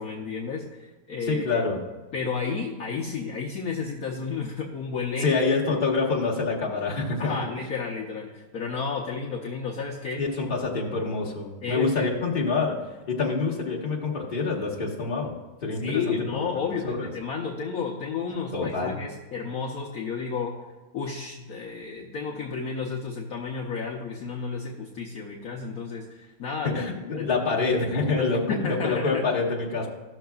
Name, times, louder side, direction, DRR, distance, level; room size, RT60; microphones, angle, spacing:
voice 1, 0.0-1.6 2.1-5.4 5.7-5.8 7.2-10.2 11.6-12.1 15.8-20.5 20.9-26.7 27.2-27.3 28.2-29.2, left 5 dB, 60° left, -2 dB, 1.1 m, -32 dB
voice 2, 1.3-1.8 5.2-7.4 10.2-12.8 13.1-15.3 15.6-16.4 16.8-17.1 18.5-18.9 26.6-29.9, left 4 dB, 25° left, -4 dB, 1.4 m, -26 dB
15.0 x 6.4 x 2.3 m, 1.2 s
omnidirectional pair, 2.0 m